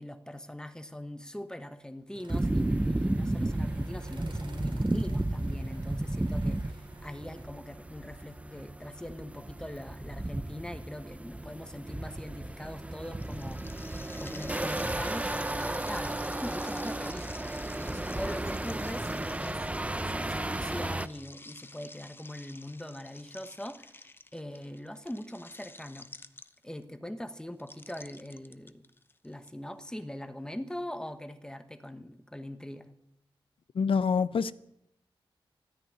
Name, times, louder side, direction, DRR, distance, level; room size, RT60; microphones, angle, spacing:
voice 1, 0.0-19.7 20.0-26.1 26.6-28.8 29.2-32.9, left 1 dB, 10° left, 1.2 m, -42 dB
sound 1, 2.1-7.4, right 3 dB, 60° right, 3.0 m, -52 dB
sound 2, 2.3-21.1, right 1 dB, 15° right, 0.6 m, -33 dB
sound 3, 13.2-26.8 27.6-29.5, left 2 dB, 25° left, 0.8 m, -50 dB
voice 2, 33.7-34.5, left 5 dB, 70° left, 0.7 m, -26 dB
13.5 x 10.0 x 9.9 m
wide cardioid pair, 95°, 9 cm